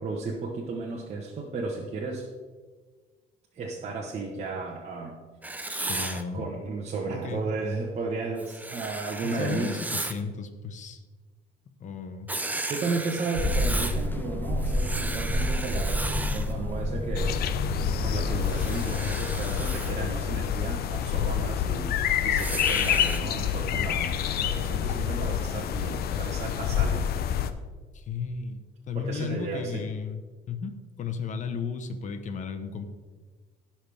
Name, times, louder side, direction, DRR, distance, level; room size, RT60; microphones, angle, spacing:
voice 1, 0.0-2.3 3.5-5.2 5.6-5.7 6.3-9.8 12.7-17.4 18.0-24.1 24.4-27.1 28.9-29.8, right 3 dB, 40° right, -2 dB, 1.3 m, -34 dB
Writing, 5.4-6.2 8.4-10.2 12.3-14.0 14.6-16.5 18.4-19.9 22.4-23.2, right 2 dB, 10° right, 0.7 m, -35 dB
voice 2, 5.7-6.5 7.1-7.4 9.3-11.0 11.7-12.3 27.9-30.2 30.5-32.8, left 5 dB, 45° left, 8 dB, 1.1 m, -34 dB
sound 1, 13.4-18.6, left 1 dB, 10° left, 1.0 m, -29 dB
sound 2, 17.2-27.5, left 9 dB, 65° left, 0.7 m, -27 dB
16.0 x 5.9 x 3.5 m, 1.4 s
cardioid pair, 110°, 17 cm